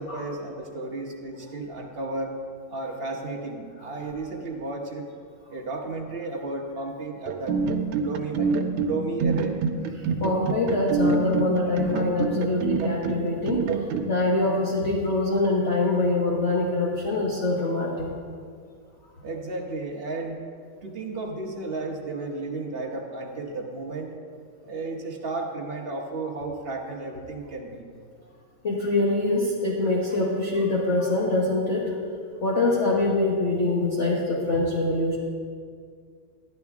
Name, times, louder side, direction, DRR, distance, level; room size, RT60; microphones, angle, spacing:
voice 1, 0.0-2.3 2.7-5.1 5.5-7.6 8.0-8.6 8.8-9.5 19.2-20.4 20.8-24.1 24.6-27.8, right 3 dB, 40° right, 1 dB, 0.8 m, -33 dB
sound 1, 7.3-14.1, right 5 dB, 80° right, 1.5 m, -26 dB
voice 2, 10.2-18.1 28.6-31.9 32.4-35.2, left 2 dB, 40° left, -4 dB, 1.2 m, -24 dB
12.0 x 10.5 x 3.5 m, 2.1 s
omnidirectional pair, 2.3 m